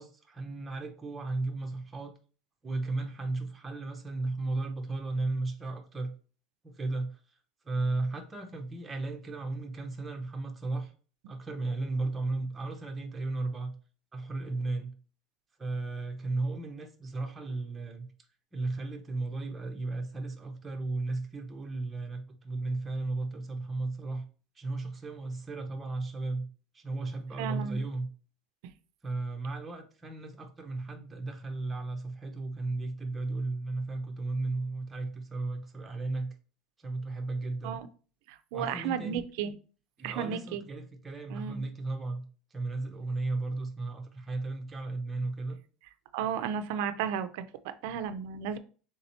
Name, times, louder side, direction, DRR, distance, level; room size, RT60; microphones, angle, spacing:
voice 1, 0.0-2.1 2.6-6.1 6.6-7.4 7.6-10.9 11.3-13.7 14.1-14.9 15.6-18.1 18.5-24.2 24.6-26.5 26.7-28.1 29.0-36.3 36.8-37.8 38.5-39.2 40.0-42.2 42.5-45.6, right 2 dB, 10° right, 0.5 m, -35 dB
voice 2, 27.4-27.8 28.6-28.7 37.6-37.9 38.3-39.5 40.0-40.6 41.3-41.7 46.1-48.6, right 8 dB, 65° right, 0.4 m, -34 dB
3.6 x 2.8 x 4.2 m
cardioid pair, 175°, 0 cm